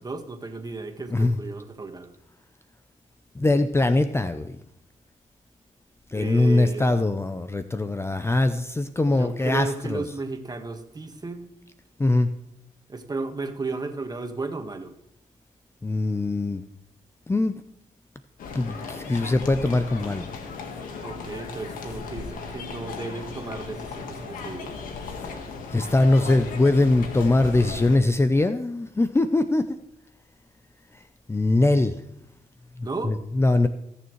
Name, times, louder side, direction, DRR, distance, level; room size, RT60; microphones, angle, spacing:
voice 1, 0.0-2.1 6.1-6.9 9.0-11.5 12.9-14.9 21.0-24.7 32.8-33.2, right 3 dB, 30° right, 6 dB, 1.6 m, -34 dB
voice 2, 3.4-4.5 6.1-10.0 12.0-12.3 15.8-16.6 17.3-17.5 18.5-20.3 25.2-25.3 25.7-29.8 31.3-32.0 32.8-33.7, left 2 dB, 20° left, 9 dB, 0.6 m, -22 dB
sound 1, 18.4-28.0, left 4 dB, 85° left, 1.5 m, -36 dB
20.0 x 7.0 x 3.2 m, 0.82 s
cardioid pair, 70°, 14 cm